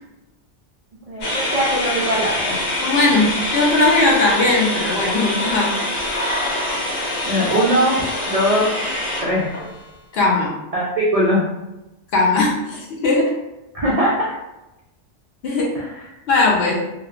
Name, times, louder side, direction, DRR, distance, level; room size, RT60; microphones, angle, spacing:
voice 1, 1.1-2.6 7.3-8.7 9.2-9.6 10.7-11.5 13.7-14.3 15.7-16.1, equal, 60° right, -5 dB, 0.3 m, -20 dB
sound 1, 1.2-9.8, left 1 dB, 85° left, 1.1 m, -24 dB
voice 2, 2.7-5.8 10.1-10.5 12.1-13.3 15.4-15.8 16.3-16.8, left 2 dB, 65° left, -2 dB, 0.8 m, -18 dB
3.0 x 2.0 x 2.4 m, 0.97 s
omnidirectional pair, 1.2 m